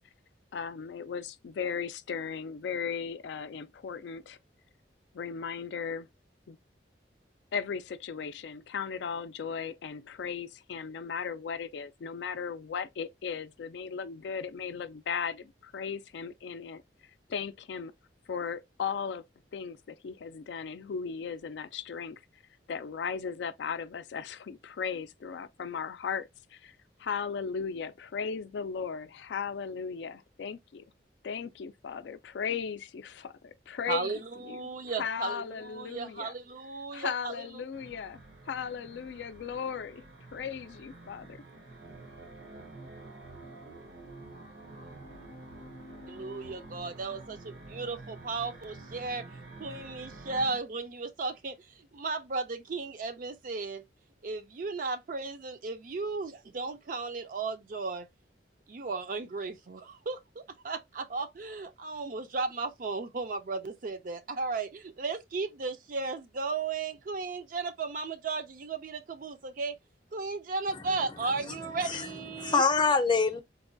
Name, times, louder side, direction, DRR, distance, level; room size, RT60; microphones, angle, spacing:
voice 1, 0.5-4.4 5.1-6.1 6.5-6.6 7.5-16.8 17.3-17.9 18.3-19.2 19.5-22.2 22.7-30.8 31.2-34.6 35.0-36.3 36.9-38.2 38.5-40.0 40.3-41.4, left 6 dB, 75° left, 0.4 m, -36 dB
voice 2, 33.9-37.5 46.1-49.2 49.6-53.8 54.2-58.1 58.7-69.7 70.1-72.6, right 4 dB, 50° right, 0.4 m, -35 dB
sound 1, 37.7-50.6, right 2 dB, 70° right, 0.8 m, -48 dB
voice 3, 71.5-72.1 72.4-73.4, left 4 dB, 25° left, 0.5 m, -26 dB
3.9 x 2.2 x 2.5 m
head